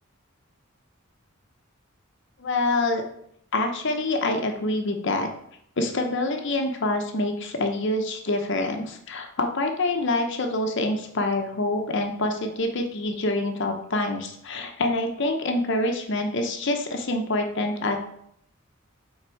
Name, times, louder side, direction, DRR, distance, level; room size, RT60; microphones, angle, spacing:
voice 1, 2.4-3.0 3.5-5.3 5.8-18.0, left 2 dB, 60° left, 4 dB, 0.8 m, -26 dB
6.1 x 4.1 x 4.5 m, 0.71 s
head